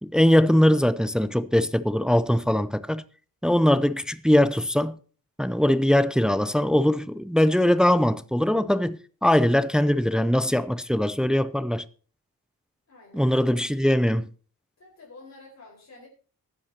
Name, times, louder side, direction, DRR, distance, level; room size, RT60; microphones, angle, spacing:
voice 1, 0.0-3.0 3.4-5.0 5.4-9.0 9.2-11.8 13.1-14.3, left 1 dB, ahead, 0.5 m, -21 dB
voice 2, 12.9-13.7 14.8-16.1, left 3 dB, 50° left, 4.8 m, -49 dB
19.5 x 10.0 x 2.9 m
wide cardioid pair, 130°, 36 cm